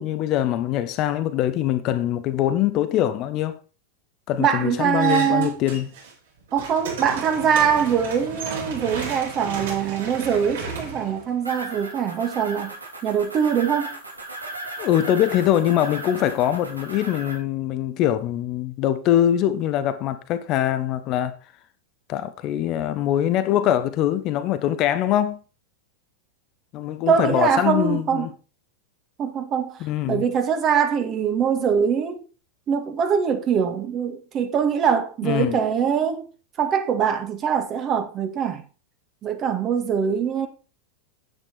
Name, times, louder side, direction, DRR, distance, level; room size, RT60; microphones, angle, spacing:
voice 1, 0.0-3.6 4.3-5.9 14.8-21.3 22.1-25.4 26.7-28.3 29.8-30.2 35.2-35.6, left 11 dB, 40° left, 1.2 m, -23 dB
voice 2, 4.4-5.6 6.5-12.7 13.0-13.9 27.1-28.3 29.2-29.8 30.1-32.2 32.7-36.2 36.6-38.6 39.2-40.5, right 7 dB, 30° right, 2.1 m, -23 dB
sound 1, 5.0-6.1 6.4-11.8, right 4 dB, 60° right, 5.7 m, -33 dB
sound 2, 11.4-17.4, right 2 dB, 80° right, 3.6 m, -36 dB
9.6 x 9.6 x 4.5 m
figure-of-eight pair, 90°, 0 cm